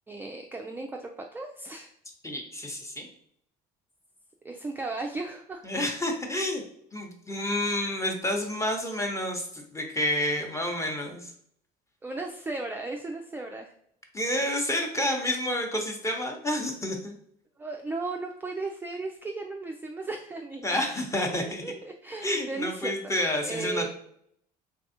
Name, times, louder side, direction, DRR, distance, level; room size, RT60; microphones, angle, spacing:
voice 1, 0.1-1.9 4.4-5.6 12.0-13.7 17.6-20.8 21.6-23.0 23.4-23.9, right 3 dB, 10° right, 2 dB, 0.3 m, -35 dB
voice 2, 2.2-3.1 5.6-6.6 6.9-11.3 14.1-17.2 20.6-21.6 22.2-23.9, left 1 dB, 15° left, 2 dB, 0.8 m, -29 dB
3.5 x 2.3 x 2.6 m, 0.67 s
hypercardioid pair, 65°, 20 cm